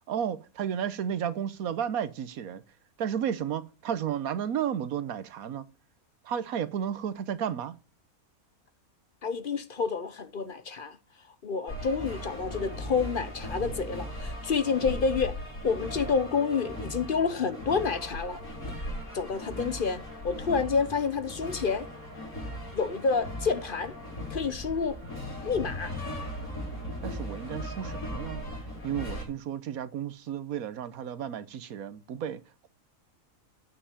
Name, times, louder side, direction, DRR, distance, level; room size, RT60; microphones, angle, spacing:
voice 1, 0.1-2.6 3.0-5.7 6.2-7.7 27.0-28.4 28.8-32.7, right 9 dB, 80° right, 1.3 m, -33 dB
voice 2, 9.2-11.0 11.4-15.4 15.6-18.4 19.1-21.9 22.7-23.9 24.3-25.0 25.4-25.9, left 5 dB, 45° left, 0.9 m, -29 dB
sound 1, 11.7-29.2, left 1 dB, 80° left, 5.9 m, -38 dB
9.3 x 5.6 x 8.3 m
omnidirectional pair, 1.5 m